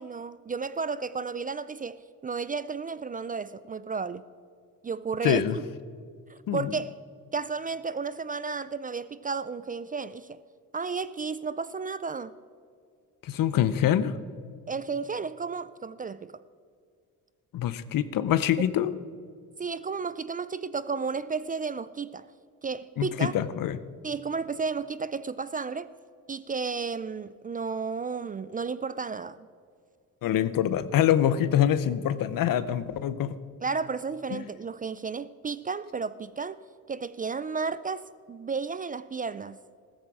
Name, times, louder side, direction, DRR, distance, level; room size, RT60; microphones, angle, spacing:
voice 1, 0.0-4.2 4.8-5.6 6.3-6.9 7.3-10.4 10.7-12.3 14.7-16.4 18.6-18.7 19.6-22.3 22.6-23.3 24.0-25.9 26.3-29.5 33.6-36.6 36.9-39.6, right 5 dB, 25° right, 0.3 m, -33 dB
voice 2, 5.2-5.6 6.5-6.7 13.2-14.2 17.5-18.9 23.0-23.8 30.2-33.4 34.3-34.4, left 10 dB, 65° left, 0.8 m, -25 dB
15.0 x 14.0 x 4.9 m
cardioid pair, 100°, 36 cm